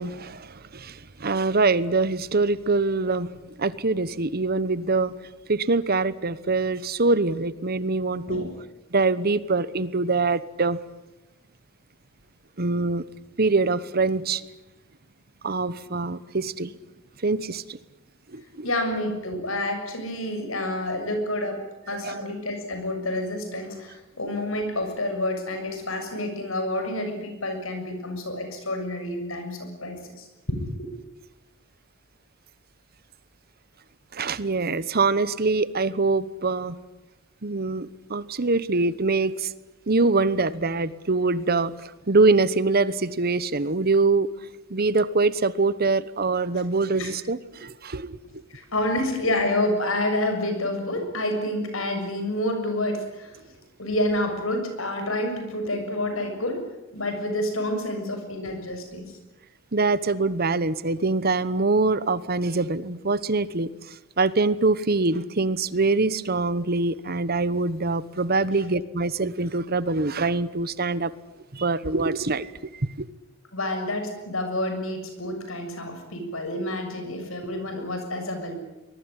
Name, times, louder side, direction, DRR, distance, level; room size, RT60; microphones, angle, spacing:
voice 1, 0.0-3.3 3.6-5.2 5.5-8.5 8.9-10.8 12.6-13.0 13.4-14.5 15.4-16.7 17.2-17.6 18.3-18.7 22.0-22.2 34.1-36.8 37.4-39.5 39.9-44.3 44.7-48.2 59.7-63.7 64.2-71.1 71.5-73.1, right 3 dB, 50° right, 1.1 m, -24 dB
voice 2, 18.6-30.9 47.0-47.1 48.5-53.4 53.8-56.7 56.9-59.1 73.5-78.5, left 1 dB, 75° left, 6.9 m, -28 dB
23.5 x 21.5 x 9.9 m
head